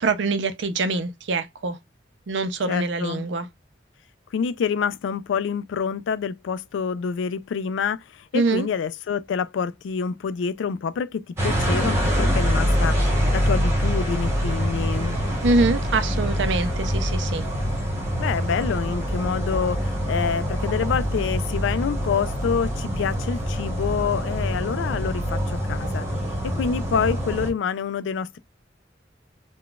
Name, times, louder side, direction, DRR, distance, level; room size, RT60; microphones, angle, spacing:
voice 1, 0.0-1.8 2.3-3.5 8.3-8.7 15.4-17.4, right 3 dB, 75° right, 0.5 m, -24 dB
voice 2, 2.7-3.3 4.3-13.0 13.3-15.2 18.2-26.1 26.4-28.4, left 6 dB, 85° left, 0.3 m, -27 dB
sound 1, 11.4-27.5, equal, 15° right, 1.0 m, -25 dB
3.7 x 2.2 x 2.3 m
head